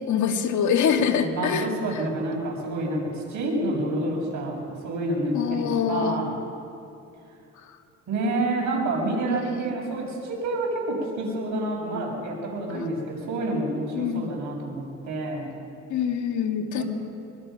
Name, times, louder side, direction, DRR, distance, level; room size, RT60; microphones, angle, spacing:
voice 1, 0.0-1.7 5.3-6.2 9.5-9.7 12.7-12.9 13.9-14.3 15.9-16.8, left 7 dB, 75° left, 4 dB, 2.1 m, -25 dB
voice 2, 0.9-6.3 8.1-15.5 16.7-16.8, right 2 dB, 75° right, -1 dB, 7.0 m, -28 dB
24.0 x 23.0 x 5.9 m, 2.6 s
cardioid pair, 90°, 30 cm